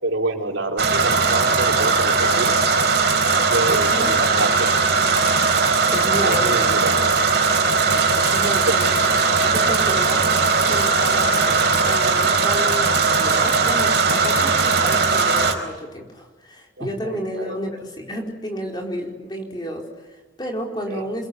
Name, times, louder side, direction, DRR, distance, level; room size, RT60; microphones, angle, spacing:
voice 1, 0.0-2.5 3.5-4.7 6.2-6.9 7.9-8.0 8.7-8.8 16.8-17.6 20.9-21.0, right 2 dB, 80° right, 2 dB, 4.1 m, -27 dB
sound 1, 0.8-15.5, right 4 dB, 55° right, 4.5 m, -19 dB
voice 2, 3.7-4.2 5.7-6.7 8.1-8.9 9.4-10.3 10.7-11.5 11.8-21.3, equal, 20° left, 1 dB, 4.6 m, -31 dB
28.5 x 22.0 x 9.5 m, 1.2 s
head